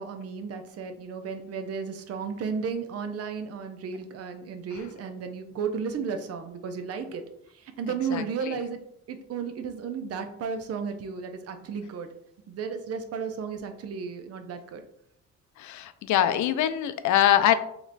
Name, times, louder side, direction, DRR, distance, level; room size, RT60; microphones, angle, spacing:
voice 1, 0.0-7.2 7.5-8.8 9.1-12.1 12.5-14.8, right 6 dB, 55° right, 7 dB, 0.6 m, -34 dB
voice 2, 8.1-8.6 15.6-17.5, left 11 dB, 70° left, 11 dB, 0.5 m, -23 dB
3.1 x 3.0 x 3.9 m, 0.76 s
cardioid pair, 90°, 30 cm